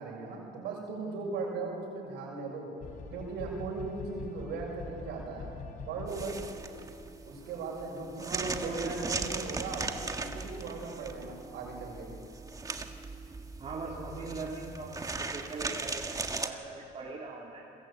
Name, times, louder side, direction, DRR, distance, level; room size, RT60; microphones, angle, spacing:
voice 1, 0.0-2.7 3.1-5.5 5.9-6.4 7.2-12.1, right 4 dB, 85° right, -1 dB, 6.9 m, -38 dB
sound 1, 2.8-7.3, left 4 dB, 50° left, 4.3 m, -44 dB
sound 2, 6.1-16.5, right 3 dB, 20° right, 1.7 m, -38 dB
voice 2, 8.3-8.9 13.6-17.6, right 3 dB, 35° right, -4 dB, 3.9 m, -39 dB
28.5 x 21.5 x 9.2 m, 2.7 s
cardioid pair, 110°, 17 cm